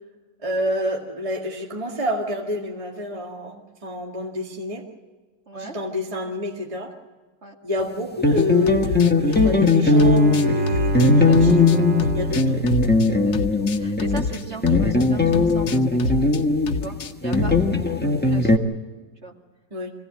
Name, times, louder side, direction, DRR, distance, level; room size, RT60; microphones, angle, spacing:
voice 1, 0.4-4.8 5.5-6.9 7.6-11.6 12.1-12.6 17.3-17.4 19.7-19.9, left 1 dB, 20° right, 0 dB, 1.8 m, -28 dB
voice 2, 5.5-5.8 7.4-7.6 11.3-11.8 12.4-12.6 13.2-15.9 16.1-16.2 16.8-17.0 17.2-17.6 17.8-18.6 19.2-19.3, right 2 dB, 35° right, 1 dB, 2.4 m, -38 dB
sound 1, 8.2-18.6, left 3 dB, 5° left, 1.1 m, -19 dB
sound 2, 8.4-15.1 15.3-16.4 16.7-17.6, left 4 dB, 65° left, 1.4 m, -29 dB
Bowed string instrument, 9.8-13.6, right 2 dB, 75° right, 2.9 m, -27 dB
25.0 x 16.5 x 7.6 m, 1.4 s
omnidirectional pair, 2.0 m